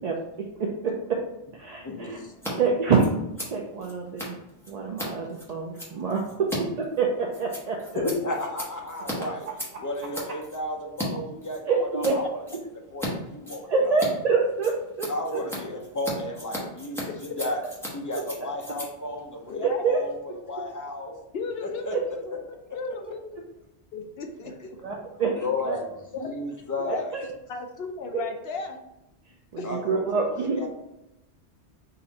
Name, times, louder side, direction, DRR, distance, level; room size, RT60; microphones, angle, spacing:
voice 1, 0.0-1.2 1.5-2.2 2.6-3.0 3.4-4.4 4.7-8.0 11.7-12.2 13.7-15.4 19.8-20.0 24.8-25.3 25.7-25.8 27.1-27.3 28.1-28.2 29.5-30.6, right 4 dB, 55° right, -1 dB, 0.4 m, -26 dB
voice 2, 1.8-2.3 2.5-2.6 7.9-9.5 9.8-14.0 15.1-17.0 17.4-17.6 17.9-21.1 21.6-22.0 22.7-22.8 25.2-25.9 26.2-27.2 29.6-30.7, left 1 dB, 25° left, 1 dB, 0.4 m, -33 dB
Scissors, 2.3-2.5 2.8-11.1 11.4-12.1 12.5-13.1 13.4-20.2, equal, ahead, 1.0 m, -37 dB
voice 3, 19.5-19.8 21.3-22.1 22.7-23.4 23.9-24.8 26.1-26.3 26.8-28.8 29.6-29.7 30.1-30.2, left 4 dB, 65° left, 4 dB, 0.8 m, -35 dB
4.0 x 2.6 x 4.0 m, 0.88 s
omnidirectional pair, 1.2 m